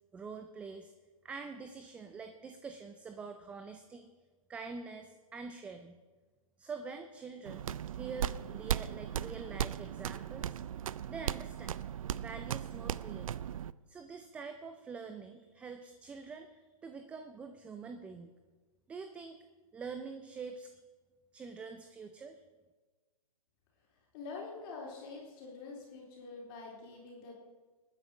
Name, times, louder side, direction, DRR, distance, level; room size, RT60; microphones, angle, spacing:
voice 1, 0.1-0.9 1.2-4.1 4.5-6.0 6.6-7.7 7.9-10.6 11.1-11.8 12.2-13.3 13.9-18.4 18.9-19.4 19.7-20.7 21.3-22.4, right 5 dB, 5° right, 7 dB, 0.4 m, -45 dB
sound 1, 7.4-13.7, right 10 dB, 60° right, 0.5 m, -37 dB
voice 2, 24.1-27.3, left 4 dB, 35° left, -2 dB, 3.6 m, -46 dB
20.5 x 9.4 x 5.2 m, 1.3 s
hypercardioid pair, 140°, 19 cm